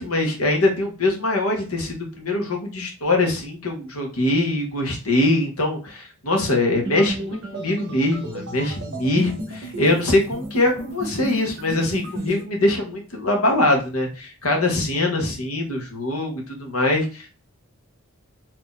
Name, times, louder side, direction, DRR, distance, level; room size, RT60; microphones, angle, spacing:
voice 1, 0.0-17.3, left 2 dB, 90° left, 2 dB, 1.1 m, -23 dB
sound 1, 6.8-12.4, right 1 dB, 55° right, 0.8 m, -33 dB
2.9 x 2.5 x 3.7 m, 0.35 s
head